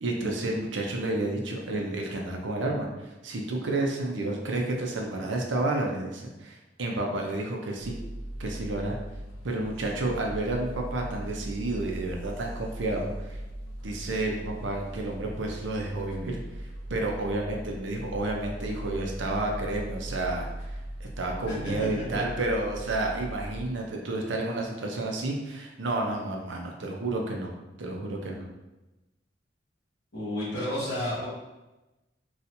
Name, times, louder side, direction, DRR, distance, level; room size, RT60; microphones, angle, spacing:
voice 1, 0.0-2.9 3.2-7.9 8.4-9.0 9.4-13.4 13.8-16.4 16.9-20.7 21.0-27.5 27.8-28.5, right 2 dB, 70° right, 1 dB, 0.6 m, -30 dB
sound 1, 7.8-23.6, right 1 dB, 85° left, 0.5 m, -39 dB
voice 2, 21.5-22.2 23.1-23.2 30.1-31.3, left 1 dB, 60° left, -8 dB, 1.5 m, -32 dB
4.2 x 2.4 x 2.6 m, 1.0 s
head